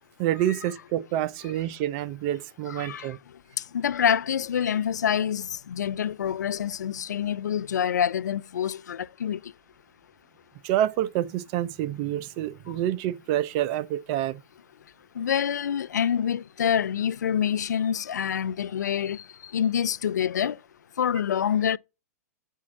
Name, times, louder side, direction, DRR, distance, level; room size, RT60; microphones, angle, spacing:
voice 1, 0.2-3.2 10.6-14.4, right 12 dB, 45° right, 0.6 m, -27 dB
voice 2, 2.7-3.2 3.7-9.5 12.7-12.8 15.2-20.6 21.0-21.8, left 8 dB, 85° left, 0.4 m, -26 dB
8.5 x 4.6 x 7.1 m
hypercardioid pair, 115°, 9 cm